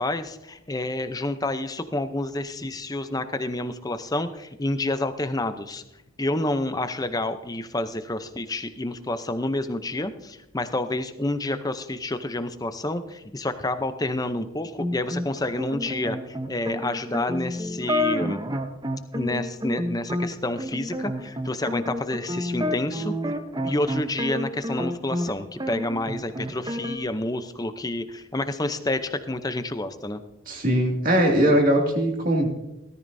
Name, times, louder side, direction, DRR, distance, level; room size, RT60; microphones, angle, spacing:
voice 1, 0.0-5.8 6.2-16.2 16.5-18.4 19.1-23.1 23.6-30.2, left 2 dB, 15° left, 10 dB, 0.6 m, -29 dB
sound 1, 14.8-25.3 25.6-27.0, equal, 20° right, 0.7 m, -29 dB
voice 2, 30.5-32.5, right 1 dB, 40° right, 1 dB, 2.3 m, -20 dB
17.5 x 13.5 x 2.7 m, 0.94 s
head